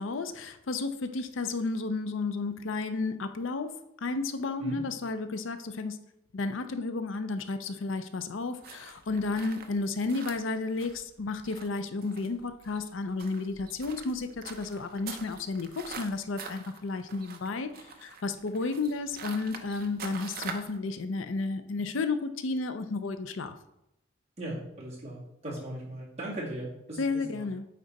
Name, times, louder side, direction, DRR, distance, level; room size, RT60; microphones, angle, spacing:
voice 1, 0.0-3.7 4.0-6.0 6.3-17.7 18.0-23.5 27.0-27.7, left 3 dB, 80° left, 9 dB, 0.5 m, -32 dB
sound 1, 8.6-20.8, right 5 dB, 50° right, 0.7 m, -45 dB
voice 2, 24.4-27.5, right 1 dB, 35° right, -5 dB, 2.2 m, -38 dB
8.6 x 3.8 x 4.1 m, 0.83 s
head